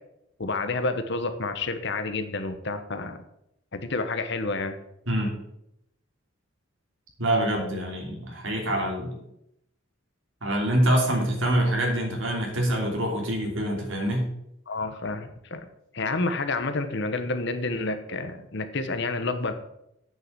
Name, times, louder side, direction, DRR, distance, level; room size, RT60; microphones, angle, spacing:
voice 1, 0.4-3.2 3.7-4.8 14.7-15.7 15.9-19.5, left 3 dB, 60° left, 9 dB, 1.1 m, -29 dB
voice 2, 7.2-9.2 10.4-14.3, right 1 dB, 70° right, 0 dB, 3.1 m, -25 dB
9.2 x 5.7 x 7.9 m, 0.80 s
head